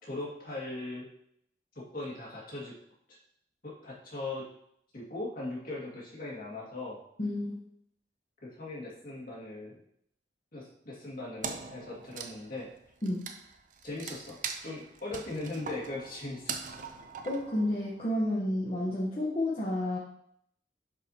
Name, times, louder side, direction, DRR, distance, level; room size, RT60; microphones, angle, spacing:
voice 1, 0.0-1.1 1.8-2.8 3.6-4.5 4.9-7.0 8.4-9.8 10.5-12.7 13.8-16.8, left 2 dB, 50° left, -4 dB, 2.0 m, -39 dB
voice 2, 7.2-7.6 13.0-13.3 17.2-20.0, left 1 dB, 35° left, -6 dB, 1.0 m, -30 dB
Wood, 11.4-18.1, right 6 dB, 45° right, 0.5 m, -42 dB
7.6 x 4.9 x 2.8 m, 0.72 s
head